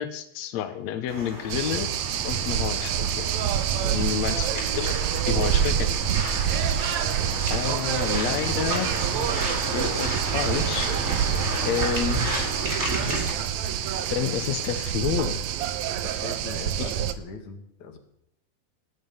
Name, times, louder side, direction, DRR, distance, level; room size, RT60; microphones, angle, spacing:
voice 1, 0.0-1.9 2.2-3.3 3.9-4.5 4.7-5.0 5.3-5.9 7.5-8.9 9.7-10.9 11.6-12.2 14.1-15.4 16.8-16.9, left 9 dB, 75° left, 8 dB, 1.6 m, -29 dB
sound 1, 1.1-13.3, right 1 dB, 15° right, 4.3 m, -32 dB
sound 2, 1.5-17.1, right 9 dB, 90° right, 1.6 m, -27 dB
voice 2, 3.7-4.2 16.0-18.0, left 4 dB, 55° left, 5 dB, 3.1 m, -40 dB
19.0 x 7.5 x 9.7 m, 0.76 s
omnidirectional pair, 4.5 m